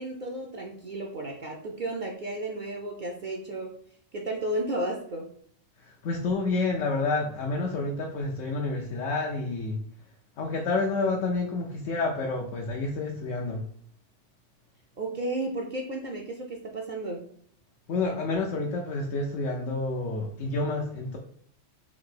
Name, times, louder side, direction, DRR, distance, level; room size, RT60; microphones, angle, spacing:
voice 1, 0.0-3.7 4.1-5.3 15.0-17.2, right 1 dB, 55° right, -1 dB, 0.6 m, -33 dB
voice 2, 5.8-9.8 10.4-13.6 17.9-21.2, left 3 dB, 80° left, 0 dB, 1.0 m, -29 dB
3.6 x 2.7 x 3.8 m, 0.62 s
omnidirectional pair, 1.3 m